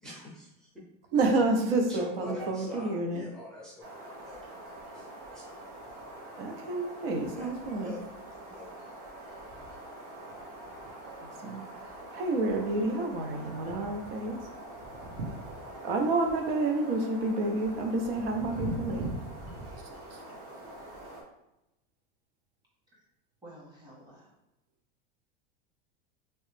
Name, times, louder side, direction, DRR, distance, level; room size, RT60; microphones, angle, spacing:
voice 1, 0.0-0.7 1.9-5.6 7.3-8.0 8.3-8.8, left 2 dB, ahead, -5 dB, 0.5 m, -44 dB
voice 2, 1.1-3.2 6.3-7.9 11.2-11.6 12.1-14.4 15.8-19.1 20.1-20.2, right 2 dB, 75° right, 3 dB, 0.8 m, -29 dB
sound 1, 3.8-21.2, right 2 dB, 45° right, 1.2 m, -43 dB
voice 3, 23.4-24.3, right 1 dB, 15° right, -4 dB, 1.1 m, -52 dB
3.2 x 3.1 x 3.2 m, 0.90 s
supercardioid pair, 150°, 30 cm